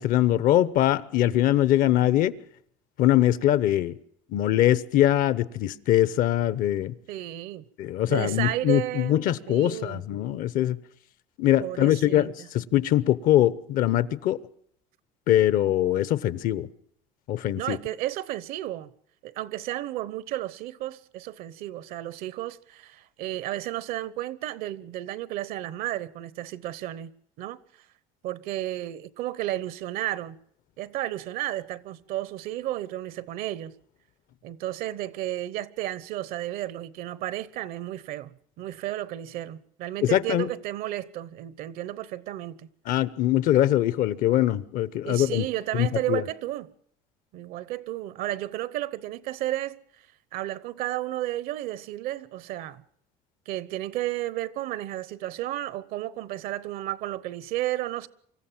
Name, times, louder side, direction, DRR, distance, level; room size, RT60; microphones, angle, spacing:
voice 1, 0.0-2.3 3.0-4.0 4.3-6.9 7.8-10.8 11.4-14.4 15.3-16.7 17.3-17.8 40.1-40.5 42.9-45.5 45.8-46.2, left 13 dB, 60° left, 0.9 m, -22 dB
voice 2, 7.1-7.6 8.1-10.0 11.6-12.5 17.5-18.9 19.2-27.1 27.4-27.6 28.2-30.4 30.8-33.7 34.4-38.3 38.6-42.7 45.0-46.7 47.3-49.8 50.3-52.8 53.5-58.1, right 14 dB, 65° right, 0.9 m, -33 dB
25.5 x 14.0 x 7.4 m
cardioid pair, 120°, 16 cm